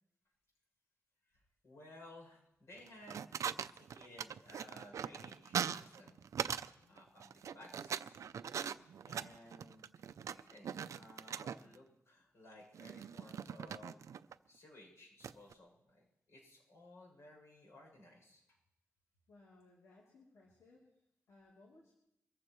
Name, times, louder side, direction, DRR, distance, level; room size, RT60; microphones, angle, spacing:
voice 1, 1.3-6.2 6.9-8.1 9.0-14.0 14.5-18.4, left 1 dB, 60° left, 0 dB, 7.1 m, -58 dB
sound 1, 2.8-6.7 7.0-11.8 12.7-14.3 15.2-15.5, right 8 dB, 80° right, 0.4 m, -41 dB
voice 2, 19.3-20.8 21.3-21.9, left 2 dB, 80° left, -4 dB, 3.1 m, -63 dB
24.0 x 14.5 x 3.2 m, 0.81 s
wide cardioid pair, 130°, 5 cm